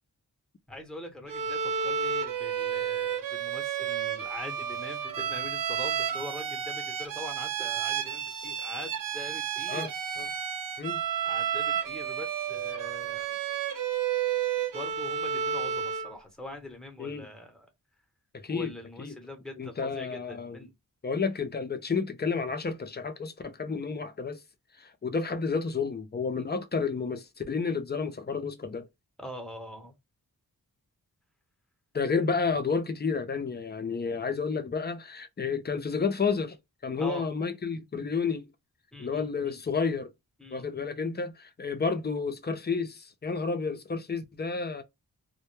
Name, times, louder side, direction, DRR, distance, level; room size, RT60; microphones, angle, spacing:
voice 1, 0.7-9.9 11.3-13.4 14.7-17.7 18.5-20.7 26.4-26.5 29.2-29.9 37.0-37.3 38.9-39.6 40.4-40.7, left 1 dB, ahead, 0.8 m, -43 dB
Bowed string instrument, 1.3-16.2, right 8 dB, 60° right, 0.6 m, -31 dB
voice 2, 18.3-18.7 19.0-19.2 19.6-20.6 21.0-24.4 24.8-28.9 31.9-36.6 36.8-38.5 39.0-40.1 40.5-44.8, left 5 dB, 30° left, 0.4 m, -31 dB
2.1 x 2.1 x 3.0 m
wide cardioid pair, 105°, 37 cm